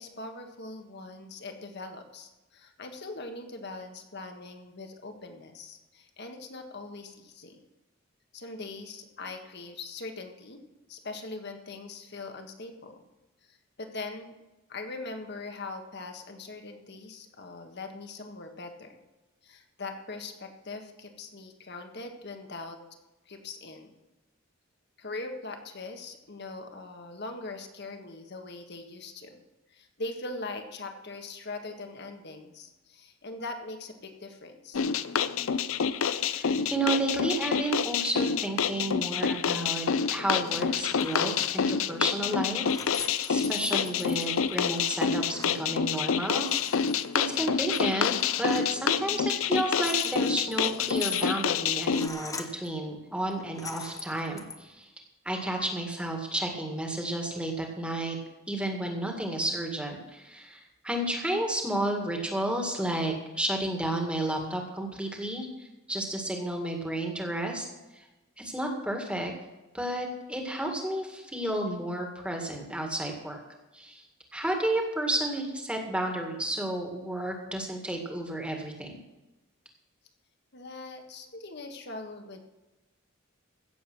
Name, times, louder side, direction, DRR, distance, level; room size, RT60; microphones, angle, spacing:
voice 1, 0.0-7.6 8.3-10.6 10.9-13.0 13.4-14.3 14.7-19.0 19.4-22.8 23.2-23.9 25.0-29.4 29.7-34.8 80.5-82.5, left 3 dB, 50° left, 5 dB, 1.7 m, -41 dB
sound 1, 34.7-52.1, left 7 dB, 75° left, 0.5 m, -28 dB
voice 2, 36.3-46.9 47.1-54.9 55.2-58.2 58.5-67.7 67.9-68.1 68.4-69.3 69.7-73.4 73.7-74.0 74.3-79.0, right 1 dB, 5° right, 2 dB, 2.0 m, -32 dB
sound 2, 40.3-40.6 40.9-41.6 42.2-45.6 45.9-46.0 46.3-47.4 47.7-48.7 49.4-52.7 53.3-54.6, left 4 dB, 15° left, 0.9 m, -42 dB
16.0 x 7.4 x 6.2 m, 1.1 s
head